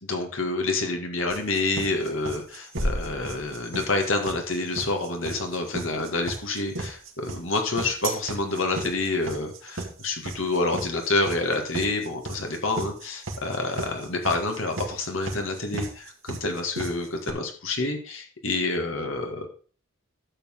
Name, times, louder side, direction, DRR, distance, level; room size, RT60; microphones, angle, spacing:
voice 1, 0.0-19.5, left 2 dB, 70° left, 3 dB, 2.1 m, -28 dB
sound 1, 1.3-17.3, right 2 dB, 75° right, 2.2 m, -35 dB
sound 2, 2.8-4.6, equal, 15° right, 4.4 m, -32 dB
12.0 x 7.3 x 3.8 m, 0.41 s
head